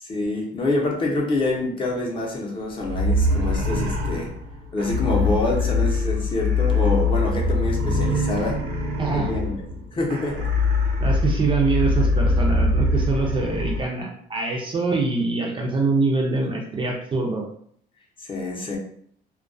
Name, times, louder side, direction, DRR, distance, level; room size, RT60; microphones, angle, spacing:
voice 1, 0.0-4.3 4.7-8.6 9.1-9.5 9.9-10.5 18.2-18.8, left 2 dB, 30° left, -1 dB, 0.7 m, -26 dB
sound 1, 2.8-13.9, left 2 dB, 70° right, 0.7 m, -23 dB
voice 2, 9.0-9.3 11.0-17.5, right 3 dB, 30° right, 0 dB, 0.5 m, -24 dB
2.2 x 2.2 x 2.5 m, 0.62 s
cardioid pair, 110°, 17 cm